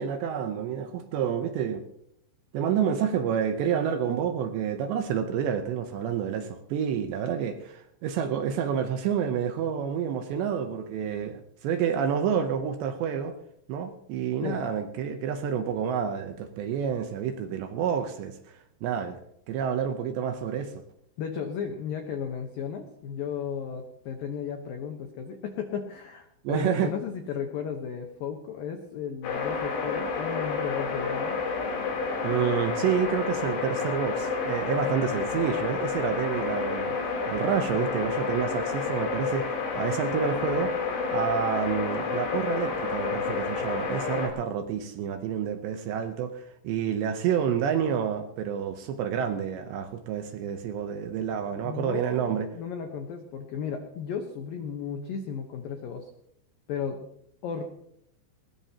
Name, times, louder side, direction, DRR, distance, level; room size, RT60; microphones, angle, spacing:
voice 1, 0.0-1.8 2.5-13.4 13.7-19.2 19.5-20.7 26.4-26.9 32.2-37.0 37.3-40.7 41.1-52.5, right 8 dB, 75° right, 7 dB, 2.7 m, -29 dB
voice 2, 21.2-31.4 51.6-56.1 56.7-57.1 57.4-57.6, left 7 dB, 85° left, 4 dB, 2.0 m, -34 dB
sound 1, 29.2-44.3, left 4 dB, 70° left, 5.5 m, -30 dB
21.0 x 19.5 x 2.9 m, 0.74 s
omnidirectional pair, 5.9 m